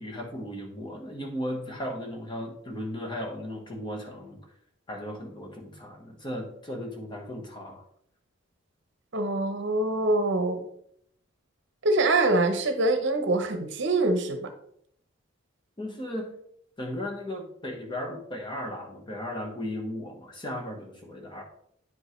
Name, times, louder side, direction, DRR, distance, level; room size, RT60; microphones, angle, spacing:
voice 1, 0.0-4.5 4.9-7.8 15.8-16.3 16.8-21.4, left 1 dB, 25° left, 1 dB, 1.3 m, -36 dB
voice 2, 9.1-10.6 11.8-14.5, right 2 dB, 60° right, 7 dB, 0.8 m, -24 dB
9.3 x 5.3 x 3.2 m, 0.68 s
head